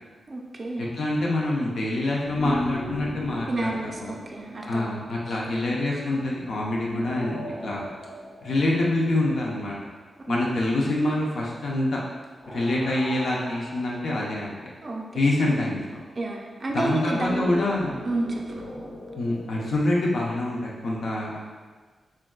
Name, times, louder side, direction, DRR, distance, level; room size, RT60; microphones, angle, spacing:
voice 1, 0.3-0.9 3.5-5.2 6.8-7.0 10.3-10.4 14.8-15.0 16.2-17.6 18.0-18.6, right 2 dB, 35° right, -1 dB, 0.3 m, -30 dB
voice 2, 0.8-3.7 4.0-4.1 4.7-7.9 8.4-9.8 10.3-12.0 12.5-14.6 15.1-16.0 16.7-18.0 19.2-21.4, left 2 dB, 70° left, -3 dB, 0.4 m, -26 dB
sound 1, 2.2-5.6 7.0-9.8 12.4-15.0 17.1-19.9, left 1 dB, 45° left, 1.1 m, -37 dB
3.3 x 2.2 x 2.3 m, 1.4 s
wide cardioid pair, 100°, 0 cm